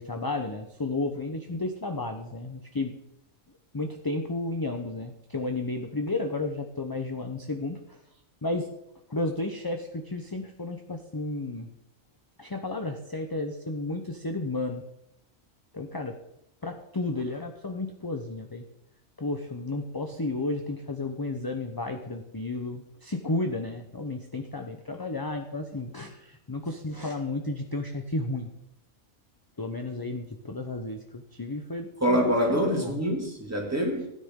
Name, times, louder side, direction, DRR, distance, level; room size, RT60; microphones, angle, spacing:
voice 1, 0.0-2.9 3.7-8.0 8.4-8.7 9.1-11.7 12.4-14.8 15.7-16.1 16.6-18.6 19.2-28.5 29.6-33.0, left 2 dB, 20° left, 5 dB, 0.7 m, -32 dB
voice 2, 32.0-34.1, equal, 10° right, -1 dB, 2.7 m, -25 dB
16.5 x 9.9 x 3.8 m, 0.83 s
omnidirectional pair, 1.4 m